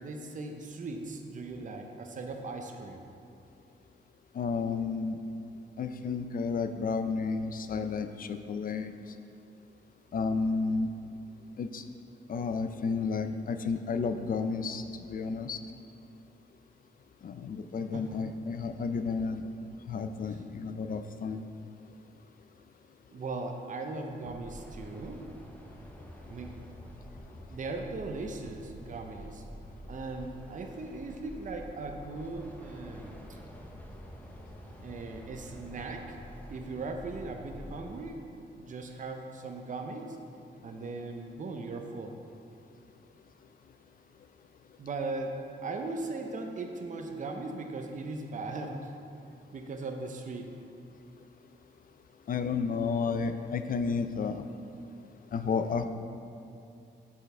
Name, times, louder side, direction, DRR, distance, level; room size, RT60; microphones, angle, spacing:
voice 1, 0.0-3.0 17.9-18.1 23.1-25.3 26.3-26.5 27.5-29.4 29.9-33.1 34.8-36.2 36.5-38.2 38.6-40.2 40.6-42.2 44.8-48.9 49.5-50.5, right 3 dB, 45° right, 3 dB, 0.6 m, -38 dB
voice 2, 4.3-5.2 5.8-8.9 10.1-10.9 11.6-11.8 12.3-15.6 17.2-19.4 19.9-21.4 52.3-54.5 55.3-55.9, left 5 dB, 50° left, 8 dB, 0.4 m, -32 dB
sound 1, 24.2-38.1, equal, 10° left, 0.6 m, -48 dB
6.2 x 5.7 x 4.3 m, 2.5 s
wide cardioid pair, 125°, 19 cm